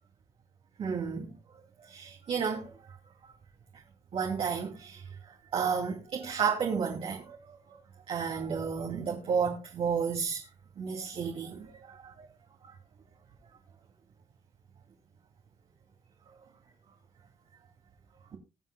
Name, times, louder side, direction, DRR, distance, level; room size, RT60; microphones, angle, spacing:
voice 1, 0.8-1.2 1.9-2.6 4.1-5.0 5.5-7.4 8.1-10.4 10.8-11.8 12.2-12.3, right 6 dB, 60° right, 2.5 m, -31 dB
21.0 x 7.4 x 2.2 m
cardioid pair, 95°, 11 cm